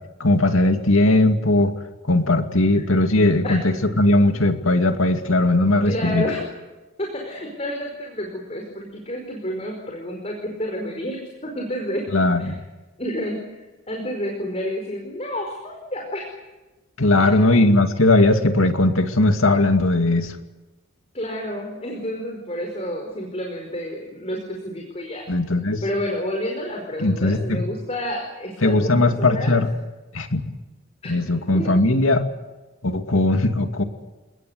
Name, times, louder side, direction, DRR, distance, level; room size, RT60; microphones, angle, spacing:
voice 1, 0.2-1.7 2.0-6.3 12.1-12.6 17.0-20.4 25.3-25.8 27.0-27.6 28.6-29.7 30.1-30.4 31.0-32.3 32.8-33.8, left 2 dB, 80° left, 6 dB, 2.4 m, -18 dB
voice 2, 5.8-6.5 7.0-12.0 12.4-12.5 13.0-16.4 17.2-17.5 21.1-25.2 25.8-29.6 31.0-31.3 31.5-31.7, equal, 30° left, 1 dB, 4.8 m, -30 dB
29.0 x 20.0 x 8.1 m, 1.1 s
head